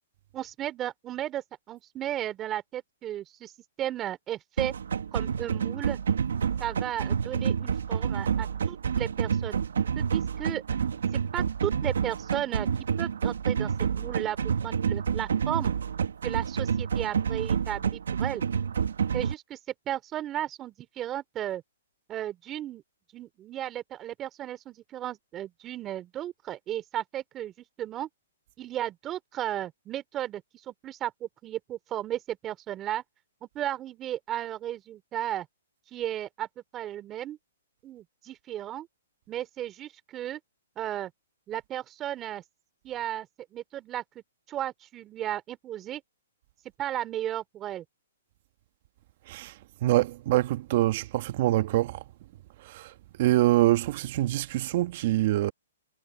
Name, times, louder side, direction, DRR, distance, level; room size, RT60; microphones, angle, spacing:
voice 1, 0.3-3.5 3.8-4.7 5.1-6.0 6.6-9.6 9.9-10.6 11.1-12.7 13.0-15.7 16.2-18.4 19.1-19.6 19.9-21.6 22.1-22.8 23.1-28.1 28.6-33.0 33.4-35.5 35.9-36.5 36.7-37.4 37.8-38.9 39.3-40.4 40.8-41.1 41.5-42.4 42.8-46.0 46.8-47.8, right 12 dB, 20° right, 3.2 m, -34 dB
sound 1, 4.6-19.3, right 7 dB, 75° right, 1.5 m, -28 dB
voice 2, 49.8-52.0 52.7-52.9 53.2-55.5, right 16 dB, 45° right, 1.5 m, -25 dB
hypercardioid pair, 145°, 0 cm